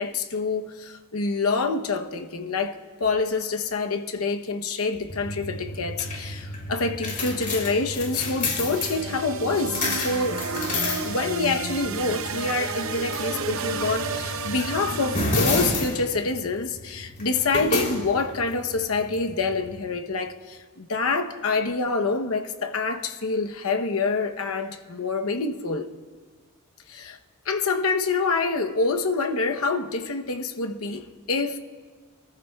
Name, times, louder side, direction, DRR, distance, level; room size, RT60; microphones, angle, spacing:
voice 1, 0.0-2.7 3.0-10.4 11.0-25.9 26.9-27.2 27.4-31.6, left 3 dB, 70° left, 0.9 m, -26 dB
sound 1, 5.1-19.8, left 2 dB, 40° left, 3.3 m, -31 dB
sound 2, 8.7-15.8, right 4 dB, 65° right, 0.8 m, -32 dB
26.5 x 14.0 x 2.4 m
head